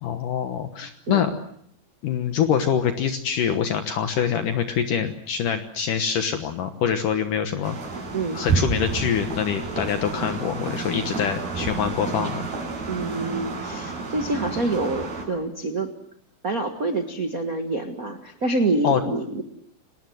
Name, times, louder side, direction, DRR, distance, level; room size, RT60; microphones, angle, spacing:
voice 1, 0.0-1.3 2.0-7.8 8.3-12.5 18.8-19.0, left 8 dB, 65° left, 8 dB, 2.6 m, -25 dB
sound 1, 7.6-15.2, right 4 dB, 75° right, 8.7 m, -30 dB
voice 2, 12.9-15.9 16.4-19.4, right 2 dB, 50° right, 6 dB, 1.0 m, -26 dB
29.5 x 19.5 x 7.8 m, 0.67 s
omnidirectional pair, 4.4 m